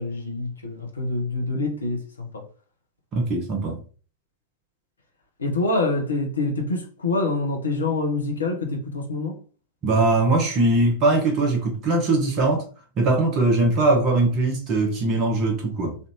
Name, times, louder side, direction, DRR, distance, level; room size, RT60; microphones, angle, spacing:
voice 1, 0.0-2.4 5.4-9.4, left 2 dB, 75° left, 0.7 m, -26 dB
voice 2, 3.1-3.8 9.8-12.7 13.0-16.0, right 2 dB, 35° right, 0.9 m, -21 dB
3.3 x 2.6 x 2.9 m
figure-of-eight pair, 90°, 0 cm